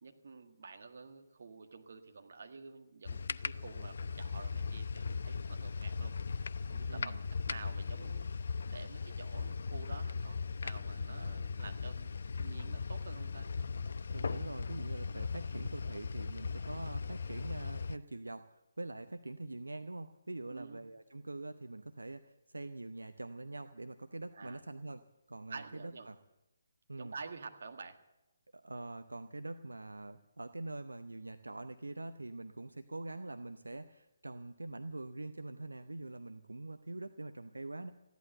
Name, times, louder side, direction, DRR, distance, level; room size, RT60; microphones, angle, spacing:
voice 1, 0.0-6.3 6.7-7.2 7.5-8.3 8.7-10.4 10.6-13.5 20.5-20.8 24.3-24.6 25.5-26.1 27.0-28.0, right 4 dB, 60° right, 5 dB, 1.7 m, -49 dB
sound 1, 3.0-18.0, left 5 dB, 60° left, 0.4 m, -38 dB
voice 2, 6.9-7.2 14.1-26.2 26.9-27.1 28.5-37.9, right 2 dB, 80° right, 10 dB, 0.7 m, -44 dB
15.0 x 11.5 x 8.0 m, 0.96 s
figure-of-eight pair, 140°, 0 cm